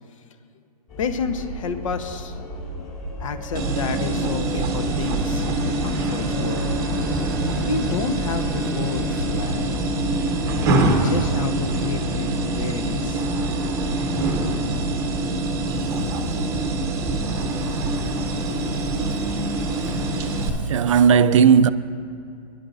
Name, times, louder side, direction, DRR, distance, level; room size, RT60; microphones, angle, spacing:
sound 1, 0.9-20.2, left 1 dB, 25° left, 3.1 m, -34 dB
voice 1, 1.0-2.4 3.2-6.8 7.6-9.8 10.8-13.3, left 4 dB, 50° left, 1.1 m, -30 dB
sound 2, 3.5-20.5, right 2 dB, 15° right, 1.0 m, -25 dB
Bowed string instrument, 4.7-10.7, left 2 dB, 5° left, 0.7 m, -40 dB
voice 2, 16.0-16.4 17.7-18.0 18.5-18.6 18.9-19.1 19.8-20.0 20.7-21.7, right 7 dB, 50° right, 0.5 m, -18 dB
26.0 x 11.5 x 2.6 m
hypercardioid pair, 160°, 21 cm